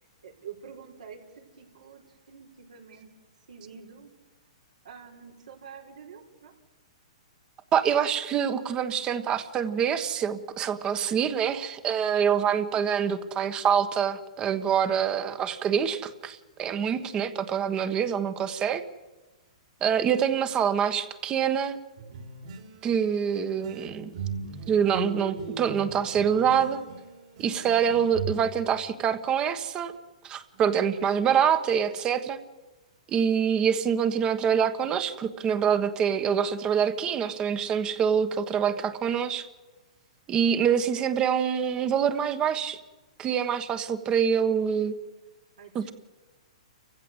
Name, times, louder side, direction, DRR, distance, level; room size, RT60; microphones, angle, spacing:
voice 1, 0.2-3.1 3.5-4.1 4.8-6.5 45.6-45.9, right 7 dB, 80° right, 1 dB, 4.8 m, -47 dB
voice 2, 7.7-18.8 19.8-21.8 22.8-24.1 24.7-26.8 27.4-29.9 30.2-32.4 33.1-39.5 40.3-42.8 43.2-44.9 45.7-45.9, right 8 dB, 25° right, 11 dB, 1.4 m, -25 dB
sound 1, 22.0-28.3, right 5 dB, 60° right, 4.4 m, -38 dB
29.0 x 15.5 x 8.1 m, 1.2 s
hypercardioid pair, 135°, 4 cm